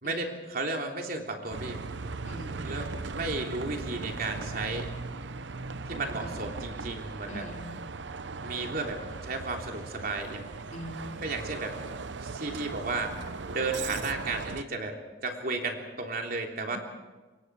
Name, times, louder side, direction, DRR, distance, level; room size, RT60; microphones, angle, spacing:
voice 1, 0.0-1.8 2.6-4.9 5.8-7.5 8.4-10.5 11.2-13.2 13.5-16.8, right 3 dB, 50° right, 2 dB, 3.4 m, -34 dB
Bus, 1.5-14.6, right 4 dB, 75° right, 0.8 m, -38 dB
voice 2, 2.2-2.6 6.2-6.4 7.3-7.8 10.7-11.2, equal, 40° left, 0 dB, 3.7 m, -42 dB
27.0 x 23.0 x 4.9 m, 1.2 s
head